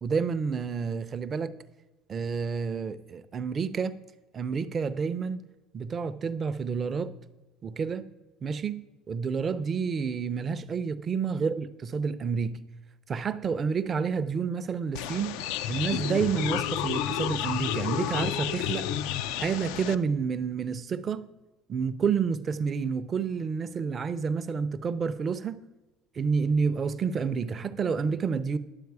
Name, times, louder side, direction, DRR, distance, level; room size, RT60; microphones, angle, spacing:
voice 1, 0.0-1.5 2.1-4.0 4.3-5.4 5.7-7.1 7.6-8.0 8.4-12.6 13.1-15.4 15.7-18.9 19.4-21.3 21.7-25.6 26.2-28.6, right 5 dB, 30° right, 0.5 m, -29 dB
sound 1, 14.9-19.9, left 11 dB, 80° left, 0.4 m, -31 dB
10.5 x 7.6 x 4.8 m
cardioid pair, 135°, 0 cm